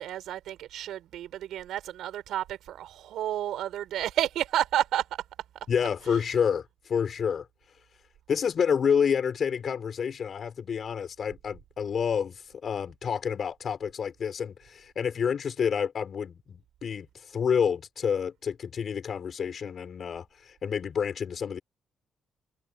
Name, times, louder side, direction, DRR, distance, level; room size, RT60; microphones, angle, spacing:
voice 1, 0.0-5.2, right 12 dB, 90° right, 6.8 m, -31 dB
voice 2, 5.7-7.5 8.3-21.6, left 7 dB, 45° left, 6.7 m, -29 dB
cardioid pair, 155°, 0 cm